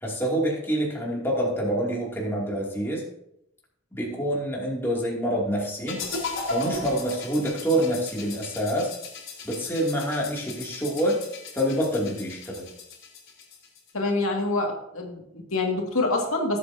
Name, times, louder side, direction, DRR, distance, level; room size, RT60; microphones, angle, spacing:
voice 1, 0.0-3.0 3.9-6.0 6.5-8.9 9.4-11.2 11.5-12.7, equal, 10° left, -4 dB, 2.6 m, -26 dB
sound 1, 5.9-13.9, left 2 dB, 70° left, 3.4 m, -36 dB
voice 2, 13.9-16.6, left 2 dB, 85° left, 0 dB, 2.1 m, -26 dB
18.0 x 7.8 x 2.8 m, 0.78 s
head